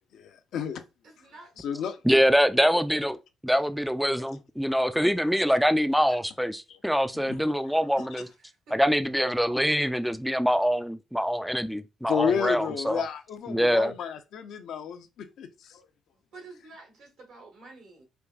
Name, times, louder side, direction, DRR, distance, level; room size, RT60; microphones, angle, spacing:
voice 1, 0.1-0.8 1.6-2.0 4.2-4.3 6.7-6.8 7.1-7.4 12.1-15.8, left 7 dB, 75° left, 0.6 m, -32 dB
voice 2, 1.0-1.6 8.2-8.8 16.3-18.0, right 3 dB, 80° right, 1.6 m, -49 dB
voice 3, 2.1-3.2 3.4-8.3 8.7-13.0 13.5-13.9, equal, ahead, 0.3 m, -24 dB
4.6 x 2.5 x 2.3 m
cardioid pair, 90°, 0 cm